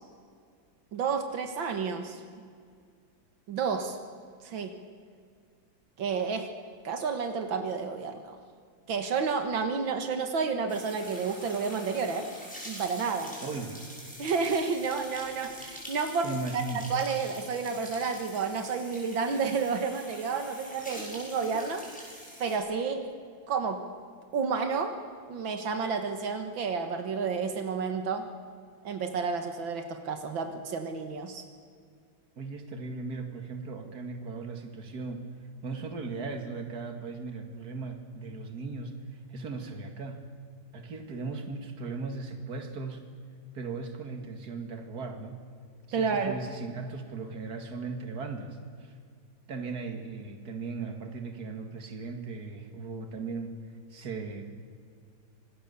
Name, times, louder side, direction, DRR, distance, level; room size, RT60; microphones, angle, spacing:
voice 1, 0.9-2.2 3.5-4.0 4.4-4.7 6.0-6.5 6.8-8.4 8.9-12.3 12.7-13.4 14.2-21.9 22.4-23.1 23.5-23.8 24.3-25.0 25.3-28.3 28.8-31.4 45.9-46.4, right 5 dB, 85° right, 6 dB, 2.3 m, -30 dB
sound 1, 10.7-22.6, equal, 5° left, 6.7 m, -45 dB
voice 2, 13.4-13.8 16.2-16.8 32.4-35.2 35.6-40.2 40.7-43.0 43.5-45.4 45.9-48.9 49.5-53.6 53.9-54.5, right 4 dB, 55° right, 5 dB, 2.6 m, -37 dB
26.0 x 19.5 x 7.0 m, 2.1 s
omnidirectional pair, 2.1 m